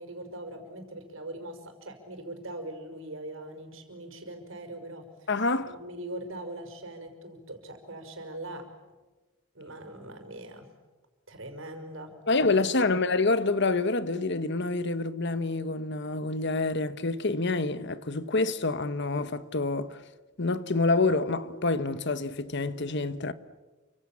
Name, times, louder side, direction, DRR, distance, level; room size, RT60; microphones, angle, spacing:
voice 1, 0.0-5.3 5.6-8.7 9.5-10.7 11.3-12.1 12.4-12.6, right 1 dB, 75° right, 5.6 m, -41 dB
voice 2, 5.3-5.7 12.3-20.0 20.4-23.3, left 3 dB, 55° left, 1.2 m, -27 dB
29.0 x 25.5 x 7.4 m
head